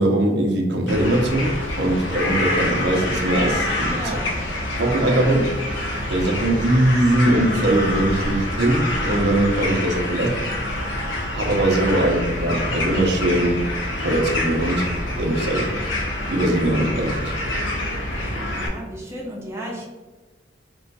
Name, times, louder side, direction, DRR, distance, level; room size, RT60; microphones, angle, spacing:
voice 1, 0.0-4.0 4.8-5.5 6.1-10.3 11.3-13.7 14.0-14.9 15.2-15.7 16.3-17.3, right 1 dB, 60° right, 1 dB, 0.6 m, -21 dB
sound 1, 0.9-18.7, left 1 dB, 85° left, 0.7 m, -26 dB
voice 2, 3.9-4.4 10.1-10.3 18.5-19.9, right 1 dB, 15° right, -4 dB, 0.7 m, -34 dB
3.0 x 2.3 x 4.0 m, 1.2 s
head